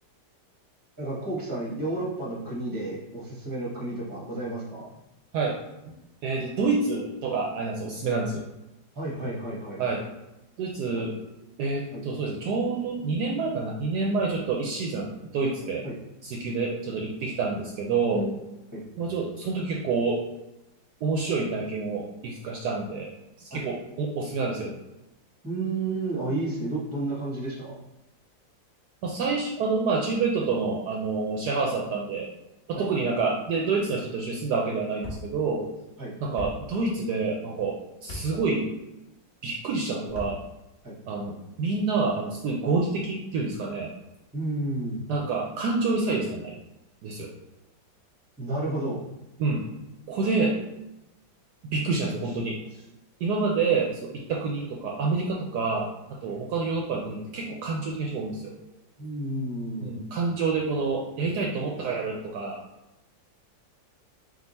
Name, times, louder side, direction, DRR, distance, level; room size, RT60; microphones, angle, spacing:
voice 1, 1.0-4.9 8.9-9.8 10.9-11.0 11.9-12.0 15.8-15.9 18.1-18.3 18.7-18.8 23.5-23.6 25.4-27.7 32.7-32.9 36.0-36.1 40.8-40.9 44.3-45.0 48.4-49.0 56.3-56.4 59.0-59.9, right 2 dB, 15° right, -4 dB, 0.8 m, -31 dB
voice 2, 6.2-8.4 9.8-10.0 10.6-11.2 11.6-15.8 16.2-18.2 19.0-20.2 21.0-23.1 23.4-24.7 29.0-32.3 32.7-35.6 36.2-38.6 39.4-40.4 41.1-43.9 45.1-46.5 47.0-47.3 49.4-49.7 50.1-50.5 51.6-52.6 53.2-55.9 56.2-58.5 59.8-62.6, right 4 dB, 70° right, -1 dB, 1.0 m, -28 dB
sound 1, 35.0-35.2 36.4-36.5 38.0-38.3 40.0-40.3, left 1 dB, 45° left, 1.2 m, -37 dB
3.7 x 2.7 x 4.0 m, 0.94 s
omnidirectional pair, 2.0 m